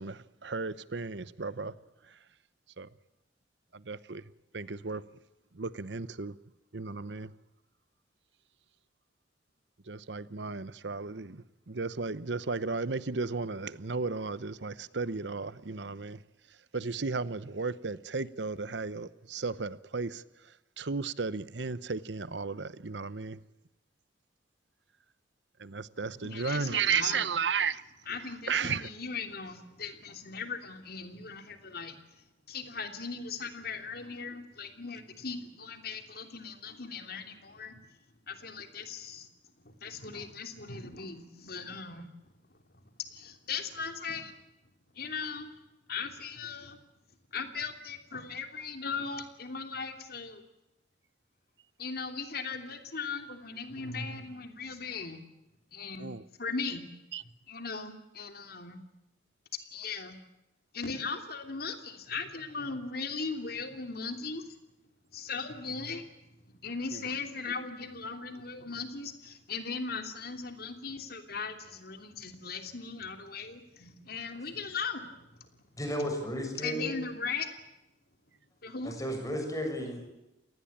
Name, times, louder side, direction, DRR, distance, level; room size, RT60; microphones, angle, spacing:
voice 1, 0.0-1.7 2.8-2.9 3.7-4.2 4.5-5.0 5.5-6.4 6.7-7.3 9.9-16.2 16.7-20.2 20.8-23.4 25.6-27.8 28.5-28.9 56.0-56.2 57.1-57.2 66.9-67.0, right 5 dB, 75° right, 17 dB, 0.9 m, -34 dB
voice 2, 26.1-27.3 28.1-32.0 32.5-37.8 38.3-39.3 39.6-42.1 43.1-44.3 44.9-45.5 45.9-46.8 47.3-50.4 51.8-55.2 55.7-56.1 56.4-56.9 57.5-58.8 59.7-60.2 60.7-64.6 65.1-66.1 66.5-75.2 76.6-77.5 78.6-78.9, left 5 dB, 60° left, 7 dB, 3.0 m, -38 dB
voice 3, 75.8-77.0 78.8-80.1, equal, 20° left, 4 dB, 6.8 m, -34 dB
28.0 x 19.0 x 8.8 m, 0.93 s
head